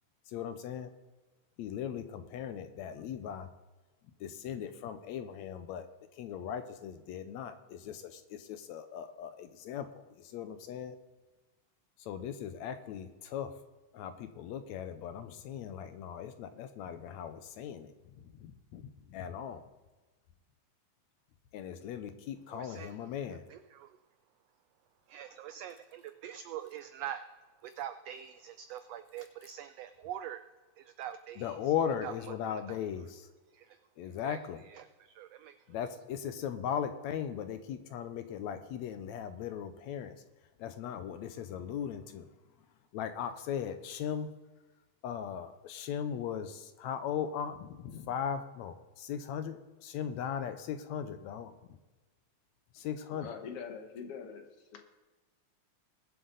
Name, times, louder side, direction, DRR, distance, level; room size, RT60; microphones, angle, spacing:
voice 1, 0.3-0.9 1.6-3.5 4.2-5.9 6.1-11.0 12.0-13.5 13.9-19.7 21.5-23.4 31.4-33.3 34.0-34.6 35.7-40.2 40.6-42.3 42.9-44.3 45.0-51.5 52.7-53.4, left 8 dB, 75° left, 10 dB, 1.9 m, -38 dB
voice 2, 22.5-22.9 23.5-23.9 25.1-27.3 27.6-30.4 30.8-31.6 32.0-32.8 33.5-34.4 34.6-35.6, right 10 dB, 90° right, 10 dB, 1.4 m, -44 dB
voice 3, 53.1-54.5 54.7-54.8, left 6 dB, 60° left, 5 dB, 1.9 m, -43 dB
20.5 x 7.5 x 4.0 m, 1.2 s
omnidirectional pair, 3.5 m